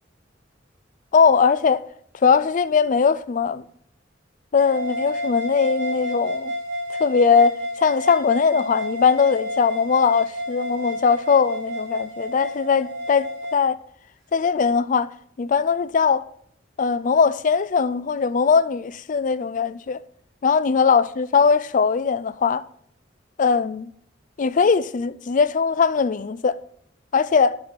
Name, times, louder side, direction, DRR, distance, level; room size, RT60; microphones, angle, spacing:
voice 1, 1.1-1.9 2.2-3.6 4.5-6.5 7.0-13.8 14.3-15.1 15.4-16.2 16.8-20.0 20.4-22.6 23.4-23.9 24.4-26.6 27.1-27.6, left 5 dB, 45° left, 0.4 m, -20 dB
sound 1, 4.6-13.6, equal, 65° right, 3.9 m, -30 dB
8.4 x 6.2 x 4.2 m
head